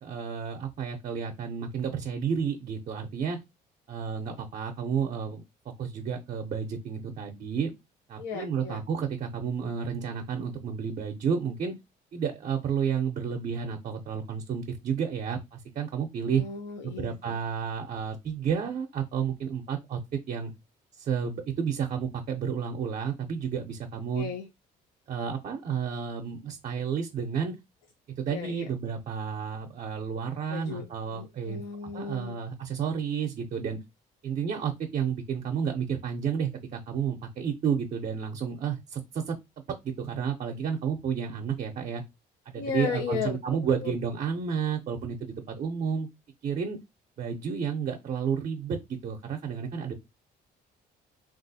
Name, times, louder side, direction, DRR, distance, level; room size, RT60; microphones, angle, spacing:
voice 1, 0.0-3.4 3.9-5.4 5.8-7.7 8.1-11.7 12.1-16.4 16.8-20.0 20.3-20.5 21.0-24.3 25.1-27.6 28.2-31.6 31.9-33.8 34.2-39.4 39.8-42.0 42.5-46.1 46.4-46.8 47.2-49.9, right 7 dB, 45° right, 0.5 m, -31 dB
voice 2, 8.2-8.8 16.2-17.4 24.1-24.5 28.3-28.7 30.5-30.8 31.1-32.4 42.6-43.9, left 6 dB, 80° left, 0.6 m, -35 dB
3.2 x 2.4 x 2.6 m
cardioid pair, 110°, 17 cm